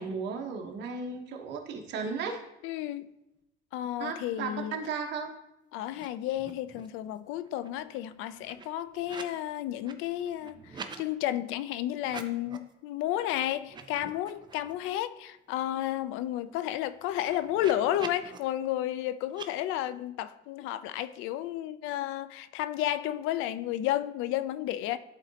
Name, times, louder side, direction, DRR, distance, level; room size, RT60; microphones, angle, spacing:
voice 1, 0.0-2.4 4.0-5.3, right 5 dB, 60° right, 1.1 m, -35 dB
voice 2, 2.6-3.1 3.7-4.8 5.7-25.0, left 13 dB, 85° left, 0.4 m, -32 dB
sound 1, 5.9-6.1 6.3-7.0 7.3-9.4 9.7-11.0 12.0-12.7 13.1-13.3 13.6-14.9 15.3-15.4 15.7-18.4 19.3-19.5, right 5 dB, 20° right, 0.4 m, -46 dB
11.0 x 3.9 x 2.8 m
cardioid pair, 150°, 20 cm